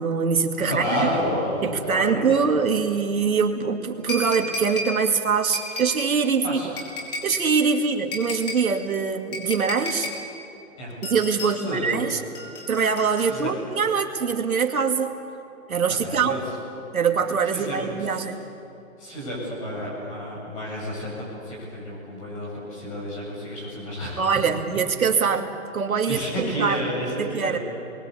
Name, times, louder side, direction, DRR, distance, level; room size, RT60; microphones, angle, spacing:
voice 1, 0.0-1.0 1.6-6.6 7.2-10.1 11.0-12.2 12.7-15.1 15.7-16.4 16.9-18.4 24.2-26.9 27.2-27.6, right 5 dB, 75° right, 4 dB, 2.3 m, -23 dB
voice 2, 0.7-2.4 6.4-6.8 10.8-11.0 11.5-11.9 13.2-13.5 15.9-16.4 17.5-18.2 19.0-24.4 26.1-27.6, equal, 20° left, -3 dB, 8.0 m, -30 dB
sound 1, 4.1-5.0 5.5-6.1 6.8-7.5 8.1-8.7 9.3-10.2 11.0-11.6 12.3-13.6 14.6-14.7, left 1 dB, 40° left, 4.5 m, -33 dB
29.0 x 23.0 x 8.5 m, 2.8 s
hypercardioid pair, 175°, 43 cm